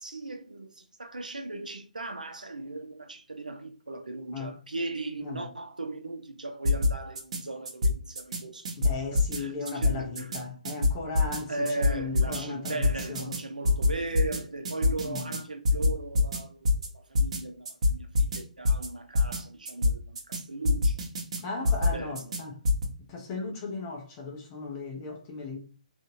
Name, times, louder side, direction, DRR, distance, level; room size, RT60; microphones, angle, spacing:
voice 1, 0.0-8.8 9.1-10.4 11.5-21.0 21.6-22.4, right 2 dB, 75° right, 0.7 m, -38 dB
sound 1, 6.6-7.4 7.7-8.4 8.6-9.4 9.6-10.4 10.6-11.4 11.7-12.4 12.6-13.4 13.6-14.4 14.6-15.4 15.6-16.4 16.6-16.9 17.1-17.4 17.6-18.4 18.6-18.9 19.1-19.4 19.7-20.4 20.6-21.4 21.6-22.4 22.6-22.9, left 3 dB, 50° right, 1.0 m, -25 dB
voice 2, 8.8-13.3 15.0-15.3 21.4-22.6 23.1-25.7, left 4 dB, 25° left, 0.7 m, -36 dB
3.6 x 2.6 x 2.7 m
figure-of-eight pair, 130°, 4 cm